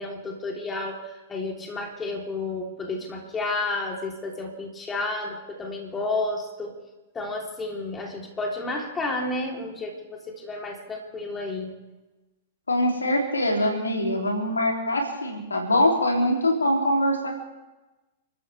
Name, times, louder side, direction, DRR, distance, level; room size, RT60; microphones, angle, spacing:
voice 1, 0.0-6.8 7.1-11.7, left 2 dB, 20° left, 0 dB, 3.6 m, -31 dB
voice 2, 12.7-17.4, left 1 dB, 85° left, 1 dB, 3.4 m, -23 dB
30.0 x 13.5 x 3.5 m, 1.1 s
figure-of-eight pair, 100°, 0 cm